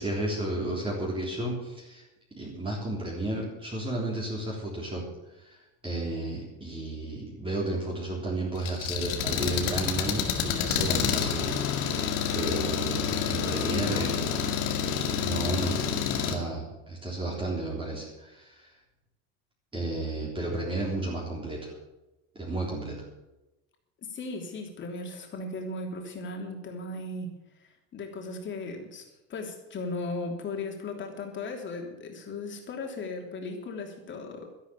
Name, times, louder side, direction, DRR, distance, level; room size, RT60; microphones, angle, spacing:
voice 1, 0.0-2.0 2.4-5.0 5.4-5.6 5.8-14.2 15.2-15.8 16.1-18.7 19.7-21.7 22.4-23.0, right 2 dB, 15° right, -4 dB, 3.6 m, -33 dB
Engine, 8.6-16.3, left 7 dB, 85° left, 2.2 m, -28 dB
voice 2, 13.5-14.1 24.0-27.3 27.6-34.5, left 3 dB, 30° left, 2 dB, 3.3 m, -37 dB
12.0 x 11.5 x 7.0 m, 0.99 s
supercardioid pair, 135°, 36 cm